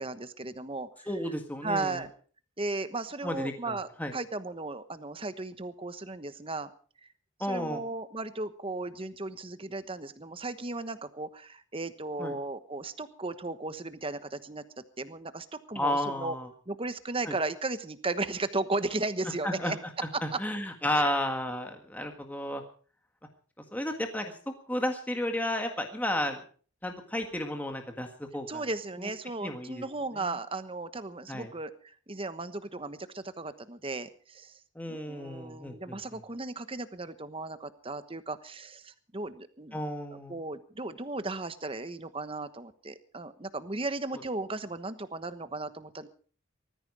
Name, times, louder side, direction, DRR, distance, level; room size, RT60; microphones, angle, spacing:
voice 1, 0.0-1.1 1.6-2.1 2.6-6.7 7.0-7.1 7.5-14.6 15.0-16.4 16.7-19.8 20.1-20.4 21.0-21.1 28.5-34.6 34.9-39.8 40.1-46.1, right 2 dB, 25° right, 11 dB, 1.1 m, -36 dB
voice 2, 1.1-2.0 3.2-4.1 7.4-7.8 12.2-12.4 15.7-16.5 17.2-17.3 19.4-19.7 20.2-22.6 23.7-24.3 24.7-26.4 26.8-28.6 29.4-29.8 30.2-30.3 31.3-31.5 34.7-36.0 39.7-40.4, left 1 dB, 10° left, 4 dB, 1.7 m, -32 dB
19.0 x 14.0 x 4.8 m, 0.42 s
head